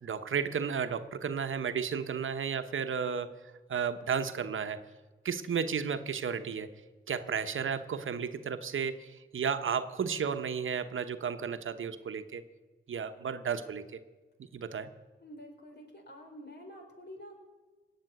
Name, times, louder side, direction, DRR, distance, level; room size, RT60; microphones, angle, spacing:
voice 1, 0.0-3.3 3.7-4.8 5.2-6.7 7.1-12.4 12.9-14.0 14.5-14.9, right 6 dB, 75° right, 10 dB, 1.0 m, -33 dB
voice 2, 15.2-17.3, equal, 55° left, 2 dB, 4.4 m, -48 dB
18.0 x 7.2 x 9.5 m, 1.2 s
cardioid pair, 45°, 21 cm